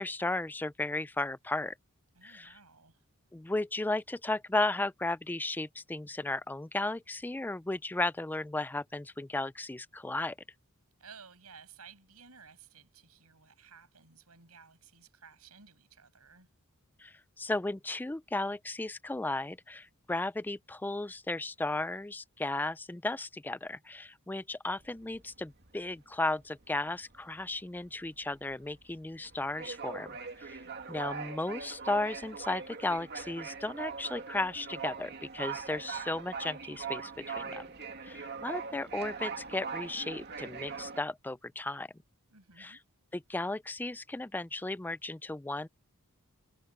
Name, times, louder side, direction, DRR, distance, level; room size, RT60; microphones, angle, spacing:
voice 1, 0.0-1.7 2.2-2.5 3.3-10.4 17.0-30.6 30.9-37.7 38.0-41.9 42.6-42.8 43.1-45.7, left 2 dB, 10° left, 0.4 m, -35 dB
voice 2, 2.1-3.0 11.0-16.5 30.6-31.0 42.3-42.8, right 6 dB, 80° right, 6.5 m, -56 dB
sound 1, 24.7-25.9 26.3-26.5 26.8-41.0, right 5 dB, 50° right, 2.2 m, -41 dB
head